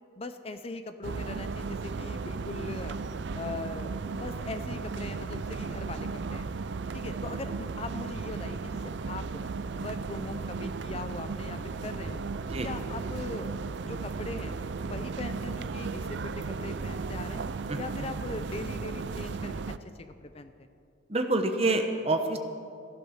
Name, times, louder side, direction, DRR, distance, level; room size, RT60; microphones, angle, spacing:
voice 1, 0.2-3.0 3.3-6.5 6.9-9.4 9.8-12.2 12.5-13.6 13.8-17.4 17.7-20.7, left 3 dB, 30° left, 9 dB, 0.5 m, -40 dB
sound 1, 1.0-19.8, right 4 dB, 65° right, 0.5 m, -35 dB
voice 2, 21.1-22.4, right 2 dB, 30° right, 5 dB, 1.1 m, -27 dB
15.5 x 11.0 x 6.5 m, 2.5 s
head